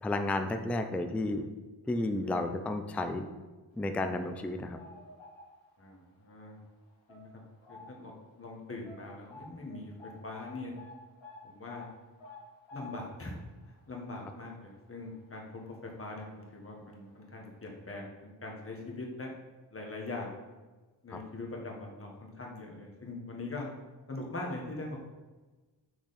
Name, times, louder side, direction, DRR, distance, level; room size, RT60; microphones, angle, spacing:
voice 1, 0.0-1.5 1.9-3.3 3.8-4.8, left 2 dB, 5° left, 7 dB, 0.3 m, -32 dB
sound 1, 3.9-5.9 6.3-6.6 7.1-8.2 8.4-8.5 8.8-15.9 16.2-16.4 17.2-17.3 17.7-17.8, left 2 dB, 85° left, 1.8 m, -52 dB
voice 2, 5.8-6.6 7.1-7.3 7.7-8.1 8.4-10.7 11.4-11.9 12.7-13.3 13.9-19.3 19.7-20.3 21.0-23.7 24.1-25.0, left 2 dB, 30° left, -1 dB, 1.5 m, -42 dB
6.4 x 5.8 x 4.1 m, 1.2 s
wide cardioid pair, 135°, 45 cm